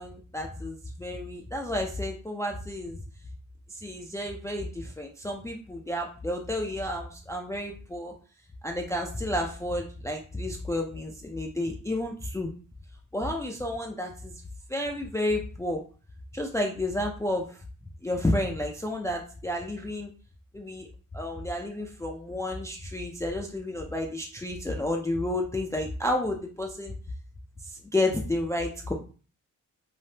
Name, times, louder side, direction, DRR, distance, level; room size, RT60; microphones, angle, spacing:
voice 1, 0.0-3.0 3.7-8.1 8.6-12.5 13.1-14.3 14.7-15.8 16.3-17.6 18.0-20.1 20.5-20.9 21.1-26.9 27.6-28.9, left 1 dB, 10° left, 1 dB, 0.3 m, -31 dB
3.3 x 2.0 x 2.7 m, 0.38 s
cardioid pair, 105°, 33 cm